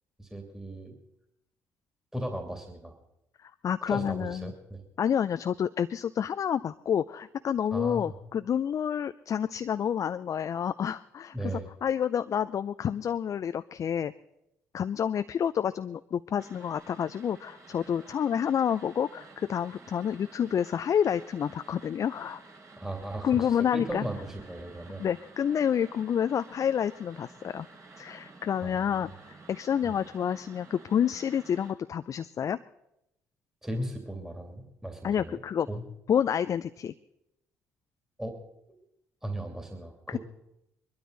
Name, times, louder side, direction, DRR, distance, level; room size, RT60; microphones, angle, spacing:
voice 1, 0.2-0.9 2.1-3.0 3.8-4.8 7.7-8.1 11.3-11.7 22.8-25.0 28.6-29.1 29.8-30.0 33.6-35.4 35.7-35.8 38.2-38.4 38.7-38.8 39.2-40.2, right 1 dB, 5° right, 3 dB, 2.8 m, -37 dB
voice 2, 3.4-4.5 5.0-14.1 14.7-22.4 23.2-24.0 25.0-27.7 28.0-32.6 35.0-35.7 36.1-36.9 40.1-40.2, left 8 dB, 45° left, 12 dB, 0.5 m, -29 dB
sound 1, 16.4-31.7, right 3 dB, 40° right, 3.8 m, -52 dB
22.5 x 12.5 x 4.0 m, 0.84 s
hypercardioid pair, 50°, 8 cm